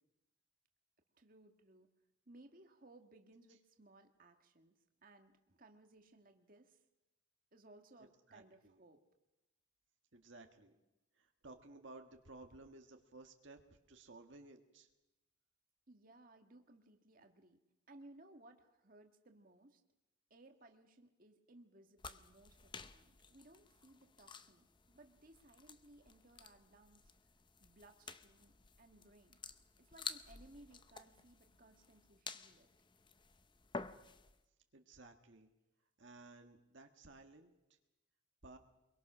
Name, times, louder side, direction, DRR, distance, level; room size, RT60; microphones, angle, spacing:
voice 1, 1.1-1.9 2.3-4.7 5.0-6.8 7.5-9.0 15.9-17.6 17.9-19.8 20.3-27.1 27.6-29.4 29.8-32.7, right 2 dB, 45° right, 5 dB, 1.7 m, -62 dB
voice 2, 8.3-8.8 10.1-10.8 11.2-14.9 34.7-35.5 36.0-37.5 38.4-38.6, right 2 dB, 65° right, 5 dB, 1.6 m, -57 dB
sound 1, 22.0-34.4, left 4 dB, 25° left, 0.8 m, -52 dB
24.0 x 23.0 x 6.2 m, 0.95 s
head